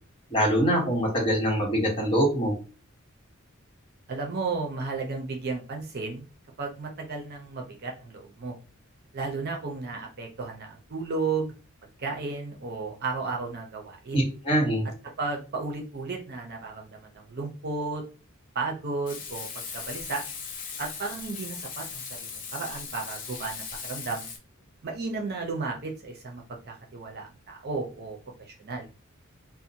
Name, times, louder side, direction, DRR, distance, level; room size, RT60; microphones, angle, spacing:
voice 1, 0.3-2.5 14.1-14.8, equal, 25° left, -2 dB, 1.1 m, -24 dB
voice 2, 4.1-6.3 6.6-8.6 9.1-11.5 12.0-14.3 15.2-18.0 18.5-19.5 19.7-20.2 20.8-24.3 24.8-28.2 28.6-28.9, right 4 dB, 50° right, 1 dB, 0.6 m, -33 dB
Frying (food), 19.1-24.4, left 5 dB, 40° left, 0.6 m, -38 dB
2.7 x 2.1 x 2.7 m, 0.33 s
head